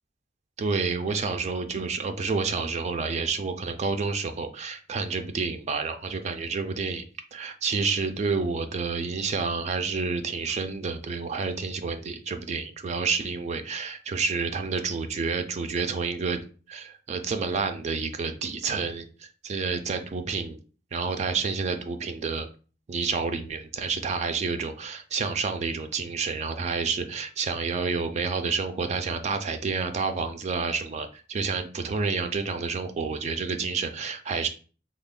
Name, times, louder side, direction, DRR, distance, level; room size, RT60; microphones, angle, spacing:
voice 1, 0.6-7.0 7.3-16.4 16.7-19.1 19.4-20.6 20.9-22.5 22.9-34.5, right 4 dB, 35° right, 7 dB, 0.3 m, -29 dB
3.2 x 2.1 x 3.6 m, 0.38 s
head